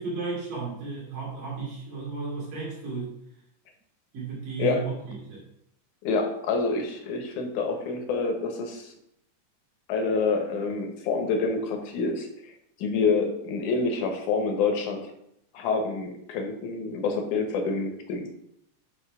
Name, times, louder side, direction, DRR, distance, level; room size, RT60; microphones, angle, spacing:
voice 1, 0.0-3.2 4.1-5.5, right 4 dB, 85° right, -5 dB, 4.7 m, -34 dB
voice 2, 6.0-8.9 9.9-12.3 12.8-15.1 15.5-18.3, left 4 dB, 70° left, 4 dB, 2.5 m, -27 dB
9.6 x 3.7 x 4.9 m, 0.76 s
omnidirectional pair, 3.7 m